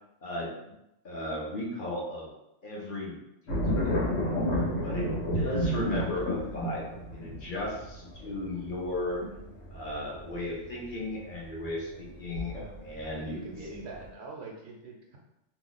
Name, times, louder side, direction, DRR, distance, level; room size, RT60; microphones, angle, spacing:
voice 1, 1.0-2.3 2.6-3.2 3.8-3.9 4.8-6.8 7.1-9.2 9.7-12.5 12.8-13.7, left 1 dB, 45° left, -4 dB, 0.9 m, -35 dB
sound 1, 3.5-13.1 13.5-14.1, equal, 75° left, 1.3 m, -31 dB
voice 2, 4.9-5.2 12.5-12.8 13.2-15.2, right 3 dB, 65° right, -1 dB, 0.9 m, -44 dB
3.0 x 2.3 x 3.9 m, 0.86 s
omnidirectional pair, 1.3 m